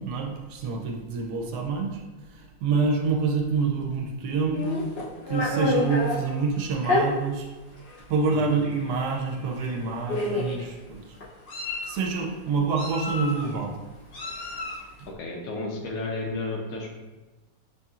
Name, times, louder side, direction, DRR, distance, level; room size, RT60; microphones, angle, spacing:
voice 1, 0.0-2.0 2.3-5.0 5.3-7.5 8.1-11.2 11.8-13.8 15.0-15.1, right 4 dB, 75° right, 1 dB, 1.1 m, -27 dB
Meow, 4.5-6.2 6.8-7.0 7.9-8.0 8.4-8.6 9.6-9.7 10.1-10.6 11.2-11.9 12.8-13.5 14.1-14.8, left 3 dB, 50° left, 0.7 m, -28 dB
voice 2, 15.1-16.9, left 3 dB, 75° left, 1 dB, 1.2 m, -32 dB
5.2 x 2.8 x 2.4 m, 1.2 s
omnidirectional pair, 1.8 m